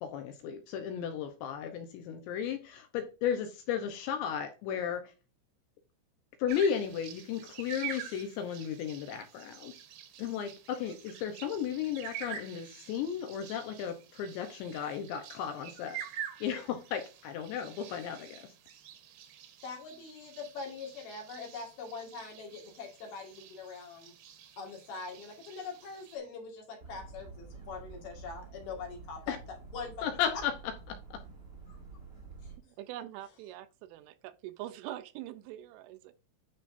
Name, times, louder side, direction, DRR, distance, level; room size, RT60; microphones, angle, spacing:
voice 1, 0.0-5.1 6.4-9.7 10.2-16.0 16.4-18.5 29.3-29.4 30.0-30.5 30.9-31.2, left 8 dB, 80° left, 2.6 m, -34 dB
sound 1, 6.5-26.2, right 9 dB, 70° right, 2.6 m, -47 dB
voice 2, 19.6-24.1 24.6-30.0 31.7-31.8, left 4 dB, 60° left, 3.1 m, -43 dB
sound 2, 26.8-32.6, right 4 dB, 25° right, 1.7 m, -49 dB
voice 3, 32.6-36.1, right 13 dB, 85° right, 2.8 m, -44 dB
11.0 x 6.2 x 2.6 m
omnidirectional pair, 6.0 m